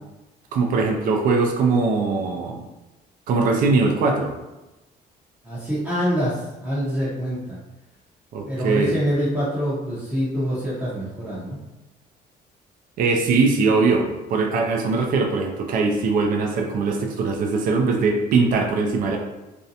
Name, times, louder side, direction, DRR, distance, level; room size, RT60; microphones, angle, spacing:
voice 1, 0.5-2.6 3.3-4.3 8.3-9.0 13.0-19.2, right 4 dB, 55° right, 2 dB, 0.4 m, -21 dB
voice 2, 5.4-7.6 8.5-11.6, equal, 10° right, -10 dB, 0.7 m, -25 dB
2.5 x 2.1 x 2.7 m, 1.0 s
cardioid pair, 110°, 17 cm